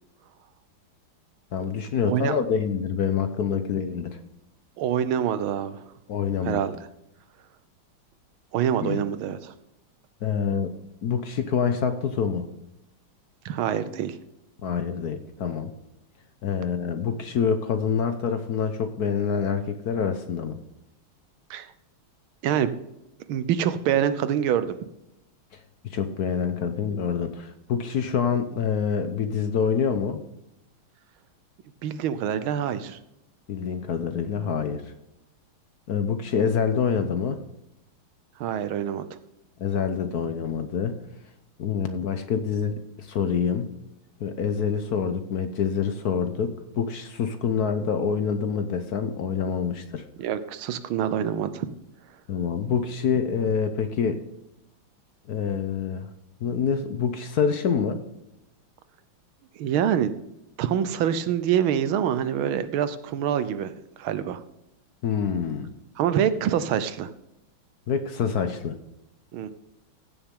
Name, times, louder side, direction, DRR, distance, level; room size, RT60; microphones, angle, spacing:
voice 1, 1.5-4.2 6.1-6.6 8.8-9.0 10.2-10.7 11.0-12.5 14.6-15.7 16.4-20.6 25.5-30.2 33.5-34.9 35.9-37.4 39.6-41.0 41.6-43.7 44.2-50.1 52.3-54.2 55.3-56.1 56.4-58.0 65.0-65.7 67.9-68.8, left 6 dB, 60° left, 9 dB, 1.1 m, -26 dB
voice 2, 4.8-5.9 6.4-6.7 8.5-9.5 13.4-14.2 21.5-21.7 22.4-22.7 23.3-24.8 31.8-33.0 38.4-39.1 50.2-51.7 59.6-60.1 60.6-64.4 66.0-67.1 69.3-69.5, right 9 dB, 85° right, 12 dB, 1.6 m, -25 dB
15.5 x 7.2 x 3.7 m, 0.85 s
omnidirectional pair, 2.2 m